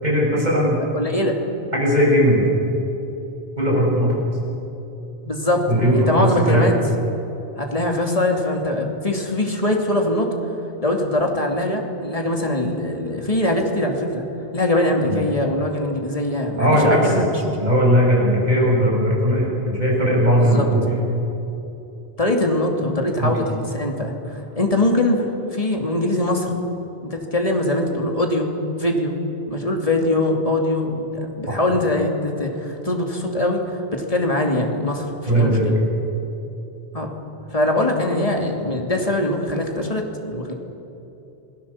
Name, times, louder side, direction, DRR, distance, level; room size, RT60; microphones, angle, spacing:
voice 1, 0.0-0.8 1.7-2.4 3.6-4.1 5.6-6.7 15.0-15.2 16.6-17.3 17.6-20.8 23.2-23.3 31.5-31.6 35.3-35.7, equal, 40° right, -4 dB, 7.3 m, -18 dB
voice 2, 0.9-1.4 5.2-6.7 7.6-10.3 10.8-14.2 14.5-17.3 20.4-20.7 22.2-26.6 27.0-28.5 28.8-29.1 29.5-35.7 36.9-37.1 37.5-40.5, left 1 dB, 35° left, 2 dB, 2.7 m, -22 dB
28.0 x 19.0 x 7.2 m, 3.0 s
omnidirectional pair, 1.1 m